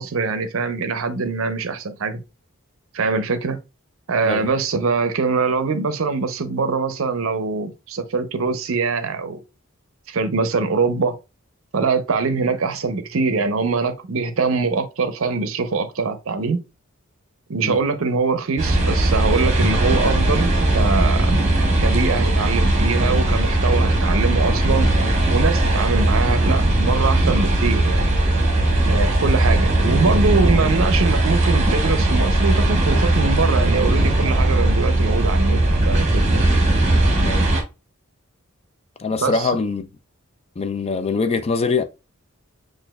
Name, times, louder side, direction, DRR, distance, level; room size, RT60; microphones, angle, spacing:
voice 1, 0.0-2.2 2.9-3.6 4.1-9.4 10.1-11.2 11.7-16.6 17.5-21.3 21.8-24.9 25.3-28.1 28.9-36.4 39.2-39.5, right 4 dB, 65° right, 0.6 m, -23 dB
sound 1, 18.6-37.6, right 1 dB, 30° right, 1.0 m, -18 dB
voice 2, 39.0-39.9 40.6-41.8, left 4 dB, 30° left, 0.4 m, -23 dB
6.1 x 2.5 x 2.2 m
head